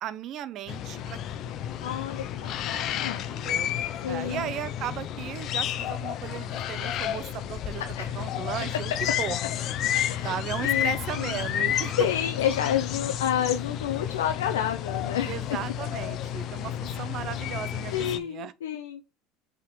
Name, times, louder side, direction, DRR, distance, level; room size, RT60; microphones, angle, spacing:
voice 1, 0.0-1.6 3.3-3.7 4.1-7.8 8.1-8.9 9.2-9.4 10.2-12.0 15.3-18.5, right 11 dB, 50° right, 0.7 m, -36 dB
sound 1, 0.7-18.2, left 10 dB, 50° left, 0.7 m, -31 dB
voice 2, 1.8-3.3 4.0-4.5 8.0-8.2 10.1-11.4 12.0-15.3 17.9-19.1, left 9 dB, 90° left, 0.6 m, -29 dB
5.8 x 3.7 x 4.6 m
hypercardioid pair, 90°, 0 cm